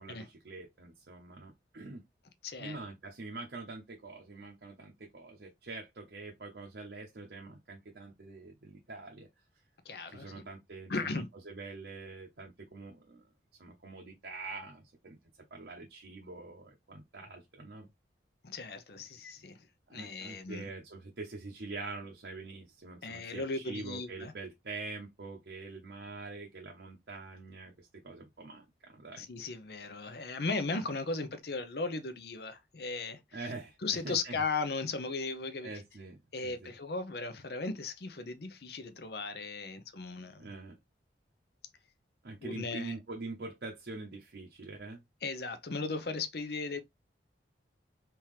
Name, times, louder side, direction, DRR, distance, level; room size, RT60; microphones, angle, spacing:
voice 1, 0.0-2.0 2.6-9.3 10.1-13.2 13.6-15.2 15.5-17.9 19.0-19.1 19.9-29.2 33.3-34.4 35.6-36.7 40.4-40.8 42.2-45.0, right 3 dB, 65° right, 0.7 m, -45 dB
voice 2, 2.4-2.8 9.9-10.4 10.9-11.3 18.4-19.6 19.9-20.7 23.0-24.3 29.2-33.5 33.8-35.7 36.3-40.5 42.4-42.9 45.2-46.8, left 3 dB, 60° left, 0.7 m, -37 dB
3.5 x 2.9 x 3.1 m
head